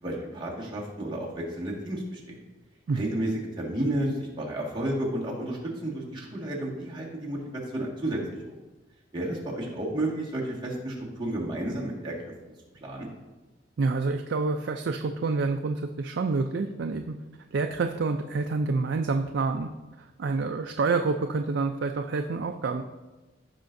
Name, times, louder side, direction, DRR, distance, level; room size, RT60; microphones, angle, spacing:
voice 1, 0.0-2.4 2.9-7.4 7.7-8.2 9.1-12.1 12.8-13.1, right 1 dB, 25° right, -4 dB, 1.8 m, -31 dB
voice 2, 13.8-17.2 17.5-19.7 20.0-22.8, right 3 dB, 65° right, 5 dB, 0.4 m, -28 dB
15.0 x 5.7 x 2.6 m, 1.2 s
head